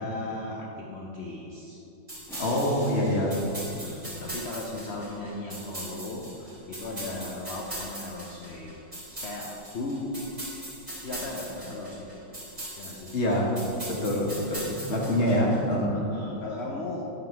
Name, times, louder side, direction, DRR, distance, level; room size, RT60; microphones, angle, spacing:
voice 1, 0.0-1.8 3.8-8.7 9.1-10.2 10.9-12.1 12.8-13.1 15.2-15.4 15.9-17.0, left 2 dB, 70° left, -2 dB, 0.6 m, -37 dB
sound 1, 2.1-15.6, right 1 dB, 20° right, 1.7 m, -40 dB
sound 2, 2.3-4.6, equal, ahead, 1.1 m, -46 dB
voice 2, 2.4-3.4 13.1-13.5 13.9-15.9, equal, 40° left, -2 dB, 1.3 m, -25 dB
10.0 x 3.8 x 4.5 m, 2.9 s
omnidirectional pair, 2.0 m